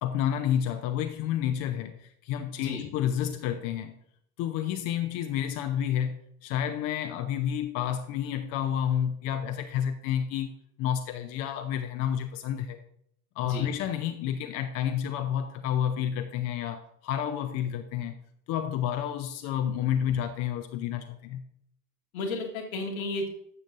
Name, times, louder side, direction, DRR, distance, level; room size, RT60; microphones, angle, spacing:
voice 1, 0.0-4.0 4.4-10.5 10.8-12.8 13.4-18.2 18.5-21.4, left 9 dB, 35° left, 8 dB, 0.5 m, -30 dB
voice 2, 22.1-23.3, left 2 dB, 65° left, 2 dB, 1.6 m, -33 dB
12.5 x 7.2 x 2.6 m, 0.71 s
figure-of-eight pair, 70°, 46 cm